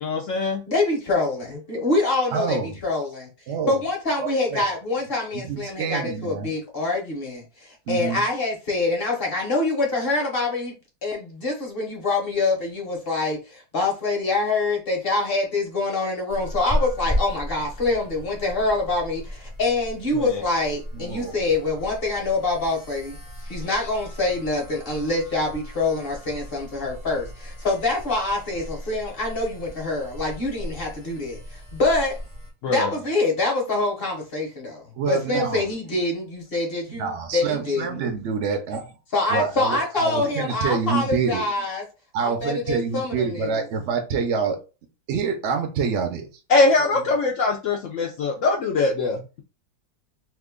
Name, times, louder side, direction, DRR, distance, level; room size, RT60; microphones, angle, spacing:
voice 1, 0.0-0.6 20.1-20.4 32.6-32.9 46.5-49.4, left 3 dB, 75° left, 0.7 m, -22 dB
voice 2, 0.7-3.3 3.7-10.7 11.0-23.2 23.4-32.2 32.7-38.0 39.1-41.8 42.2-43.6, left 2 dB, 40° left, 1.0 m, -25 dB
voice 3, 2.3-2.8 3.5-3.7 4.2-4.6 5.3-6.5 7.9-8.2 21.0-21.3 35.0-35.6 37.0-38.8 39.3-41.4 42.1-44.6 45.1-46.3, right 6 dB, 65° right, 0.7 m, -26 dB
sound 1, 16.3-32.5, equal, 5° right, 0.7 m, -35 dB
2.9 x 2.4 x 3.6 m
omnidirectional pair, 1.8 m